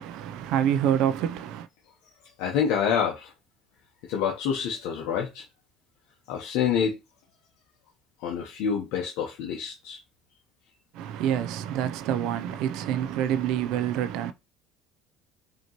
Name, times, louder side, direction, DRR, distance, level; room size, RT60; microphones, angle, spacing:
voice 1, 0.0-1.7 10.9-14.3, right 10 dB, 65° right, 0.4 m, -27 dB
voice 2, 2.4-3.3 4.1-5.4 6.3-7.0 8.2-10.0, left 7 dB, 75° left, 0.8 m, -27 dB
5.1 x 2.8 x 2.9 m
cardioid pair, 120°, 0 cm